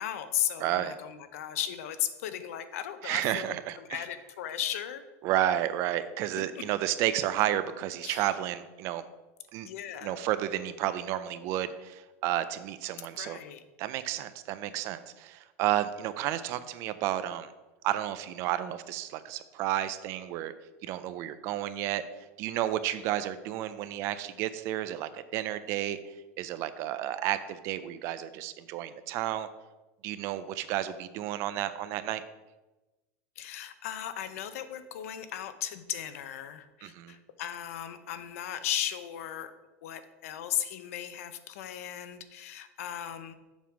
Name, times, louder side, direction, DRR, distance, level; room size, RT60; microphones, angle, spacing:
voice 1, 0.0-5.0 6.6-6.7 8.0-8.3 9.6-10.3 13.2-13.6 33.4-39.5 39.8-43.3, left 11 dB, 75° left, 11 dB, 0.7 m, -36 dB
voice 2, 0.6-0.9 3.0-4.0 5.2-9.0 9.5-9.7 10.0-13.4 13.8-17.5 17.8-20.5 20.8-22.0 22.4-26.0 26.4-29.5 30.0-32.2 36.8-37.2, right 12 dB, 35° right, 13 dB, 0.4 m, -31 dB
7.3 x 3.6 x 6.1 m, 1.1 s
supercardioid pair, 170°, 8 cm